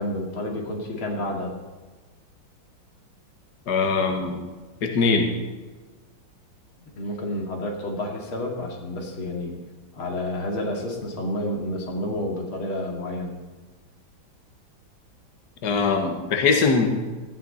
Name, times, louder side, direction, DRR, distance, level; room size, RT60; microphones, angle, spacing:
voice 1, 0.0-1.5 7.0-9.6 10.0-13.3, left 1 dB, 90° left, 0 dB, 3.1 m, -30 dB
voice 2, 3.7-4.4 4.8-5.3 15.6-16.9, left 4 dB, 55° left, 3 dB, 1.9 m, -21 dB
17.0 x 13.5 x 4.1 m, 1.3 s
omnidirectional pair, 2.2 m